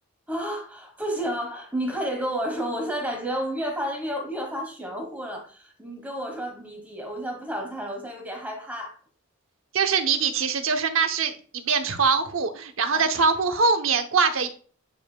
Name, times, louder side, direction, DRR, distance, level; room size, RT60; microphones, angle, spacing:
voice 1, 0.3-9.0 12.9-13.1, equal, 10° right, 1.2 m, -31 dB
voice 2, 9.7-14.5, right 5 dB, 75° right, 0.8 m, -23 dB
8.6 x 5.2 x 2.2 m
head